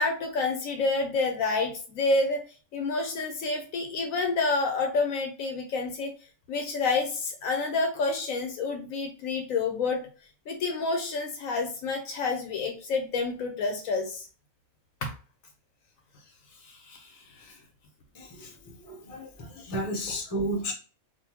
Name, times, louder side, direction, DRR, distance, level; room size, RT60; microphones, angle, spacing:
voice 1, 0.0-2.4 2.7-6.1 6.5-10.0 10.5-14.3 15.0-15.1 16.7-17.5 19.6-19.7, left 3 dB, 70° left, 5 dB, 1.0 m, -29 dB
voice 2, 18.2-18.5 18.9-20.7, right 1 dB, 30° left, 1 dB, 0.7 m, -32 dB
3.6 x 2.6 x 2.8 m, 0.37 s
omnidirectional pair, 1.5 m